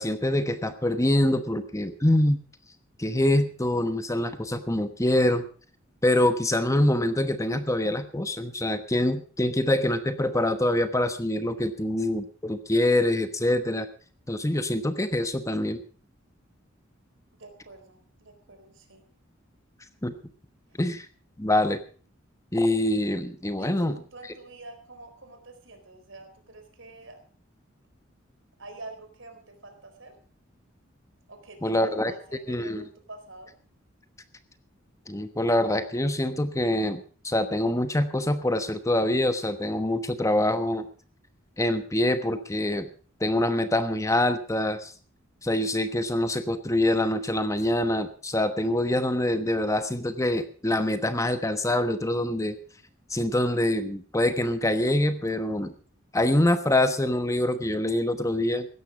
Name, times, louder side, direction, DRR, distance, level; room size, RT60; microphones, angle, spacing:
voice 1, 0.0-2.4 3.0-5.5 6.0-13.9 14.3-15.8 20.0-20.1 20.8-21.1 21.4-21.8 22.5-24.0 31.6-32.1 32.5-32.8 35.1-40.9 41.6-42.9 43.2-44.9 45.4-52.6 53.1-55.7 56.1-58.7, left 1 dB, 15° left, 10 dB, 1.1 m, -25 dB
voice 2, 17.3-19.0 20.7-20.8 23.6-27.2 28.6-30.1 31.3-33.5, right 2 dB, 70° right, 7 dB, 4.2 m, -47 dB
16.5 x 13.0 x 5.0 m, 0.40 s
head